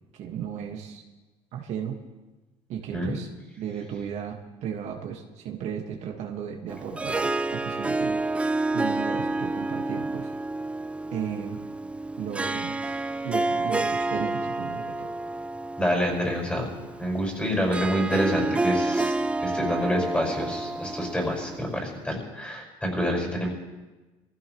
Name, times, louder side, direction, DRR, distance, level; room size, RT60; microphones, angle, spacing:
voice 1, 0.1-1.0 1.5-1.9 2.7-3.3 3.6-8.2 8.7-10.3 11.1-11.6 12.2-12.8 13.2-15.1, right 8 dB, 65° right, 2 dB, 1.7 m, -35 dB
Harp, 6.7-22.0, right 2 dB, 10° right, 0.4 m, -29 dB
voice 2, 15.8-16.7 17.0-19.1 19.4-23.5, equal, 10° left, 0 dB, 5.5 m, -27 dB
23.0 x 15.5 x 3.2 m, 1.2 s
cardioid pair, 115°, 13 cm